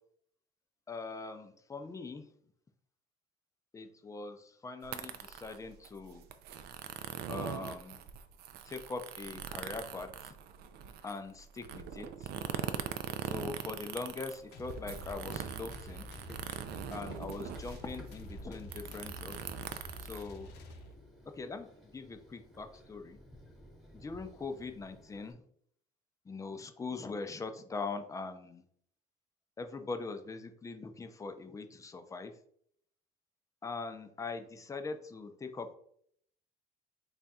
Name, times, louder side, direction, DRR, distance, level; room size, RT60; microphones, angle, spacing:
voice 1, 0.9-2.3 3.7-6.3 7.3-8.0 8.6-10.3 11.0-12.3 13.2-16.1 16.9-19.4 20.0-20.5 21.2-23.2 23.9-25.4 26.3-28.6 29.6-32.3 33.6-35.8, left 4 dB, 20° left, 7 dB, 0.4 m, -42 dB
sound 1, 4.8-20.9, right 9 dB, 75° right, 0.4 m, -42 dB
sound 2, 14.5-21.2, left 1 dB, 80° left, 0.6 m, -48 dB
Run, 15.3-25.3, equal, ahead, 0.9 m, -55 dB
3.3 x 2.4 x 4.0 m, 0.66 s
cardioid pair, 110°, 17 cm